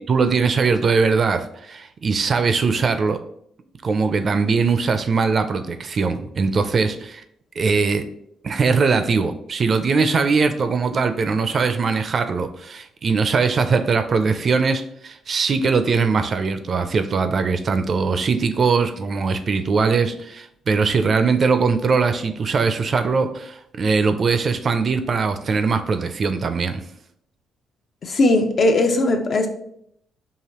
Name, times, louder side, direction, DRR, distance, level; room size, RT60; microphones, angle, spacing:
voice 1, 0.1-3.2 3.8-7.2 7.6-8.1 8.4-26.8, right 4 dB, 45° right, 9 dB, 0.4 m, -21 dB
voice 2, 28.0-29.5, left 2 dB, 50° left, 5 dB, 0.6 m, -18 dB
4.8 x 2.7 x 2.9 m, 0.71 s
cardioid pair, 90°, 0 cm